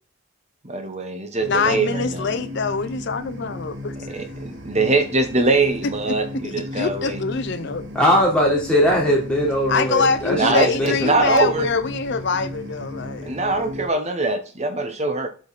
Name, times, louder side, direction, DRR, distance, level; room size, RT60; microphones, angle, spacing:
voice 1, 0.6-2.3 4.6-7.2 10.3-11.7 13.2-15.3, right 3 dB, 30° right, 1.1 m, -22 dB
sound 1, 1.4-13.9, left 1 dB, 55° right, 1.7 m, -35 dB
voice 2, 1.5-3.7 6.1-6.2 6.4-7.9 9.7-13.4, left 4 dB, 50° left, 0.6 m, -24 dB
voice 3, 7.9-10.9, equal, 5° left, 3.2 m, -20 dB
8.3 x 5.2 x 4.1 m
head